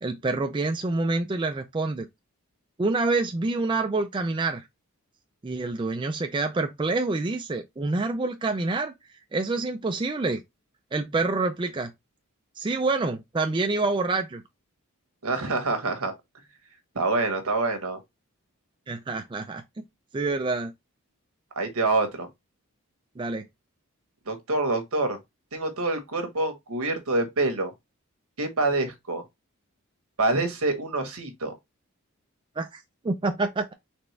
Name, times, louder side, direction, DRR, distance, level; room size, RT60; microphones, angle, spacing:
voice 1, 0.0-2.1 2.8-4.6 5.4-8.9 9.3-10.4 10.9-11.9 12.6-14.4 18.9-19.8 20.1-20.7 23.2-23.4 32.6-33.7, right 3 dB, 20° right, 0.4 m, -27 dB
voice 2, 15.2-16.1 16.9-18.0 21.5-22.3 24.3-25.2 25.5-27.7 28.4-29.2 30.2-31.5, right 2 dB, 75° right, 1.3 m, -26 dB
4.3 x 3.3 x 3.2 m
head